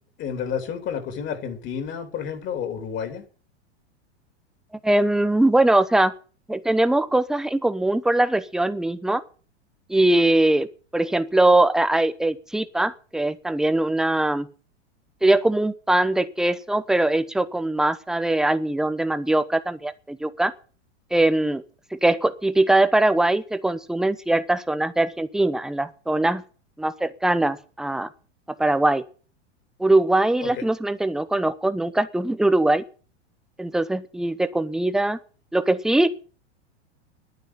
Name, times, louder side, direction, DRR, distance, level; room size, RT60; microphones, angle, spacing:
voice 1, 0.2-3.2 30.4-30.6, left 7 dB, 35° left, 7 dB, 3.2 m, -30 dB
voice 2, 4.8-6.1 6.5-9.2 9.9-10.7 10.9-14.5 15.2-20.5 21.1-21.6 21.9-26.4 26.8-28.1 28.6-29.0 29.8-32.8 33.6-35.2 35.5-36.1, right 2 dB, ahead, 13 dB, 0.8 m, -21 dB
10.5 x 9.5 x 8.8 m, 0.38 s
hypercardioid pair, 130°, 34 cm